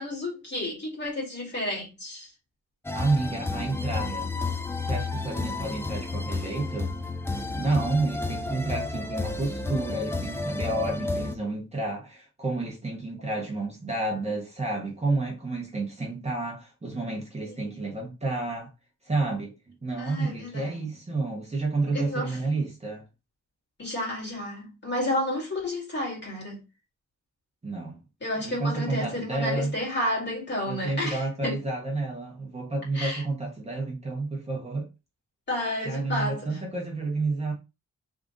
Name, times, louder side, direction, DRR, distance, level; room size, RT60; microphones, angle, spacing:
voice 1, 0.0-2.3 17.4-17.7 19.9-20.8 21.9-22.4 23.8-26.6 28.2-31.6 32.9-33.2 35.5-36.6, left 1 dB, 40° left, 2.1 m, -31 dB
sound 1, 2.8-11.3, left 3 dB, 10° left, 0.3 m, -31 dB
voice 2, 2.9-4.3 4.9-6.9 7.6-18.7 19.0-19.5 19.8-23.0 27.6-28.0 28.4-29.7 30.7-34.9 35.8-37.5, right 3 dB, 20° right, 0.9 m, -30 dB
3.6 x 2.6 x 3.8 m
wide cardioid pair, 160°, 29 cm